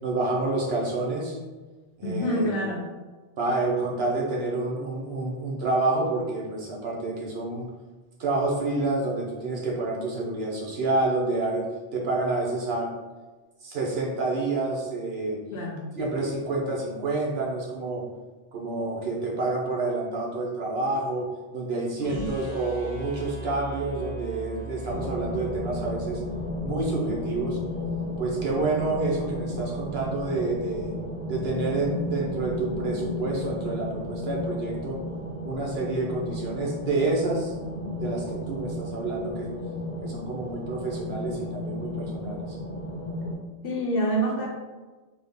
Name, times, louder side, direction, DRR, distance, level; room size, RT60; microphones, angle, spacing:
voice 1, 0.0-1.4 2.0-2.4 3.4-7.7 8.2-12.9 13.6-15.4 15.9-18.0 18.5-21.3 21.5-26.2 26.6-27.6 28.2-30.9 31.3-35.0 35.4-37.5 38.0-39.5 40.0-42.6, right 2 dB, 70° right, -2 dB, 1.0 m, -28 dB
voice 2, 2.0-2.9 15.5-15.9 22.0-22.3 28.8-29.0 43.6-44.5, right 1 dB, 60° left, -2 dB, 1.0 m, -27 dB
sound 1, 22.0-28.1, right 3 dB, 30° right, 0.9 m, -40 dB
sound 2, 24.9-43.3, left 1 dB, 25° left, 0.9 m, -33 dB
3.6 x 2.2 x 3.6 m, 1.3 s
omnidirectional pair, 1.1 m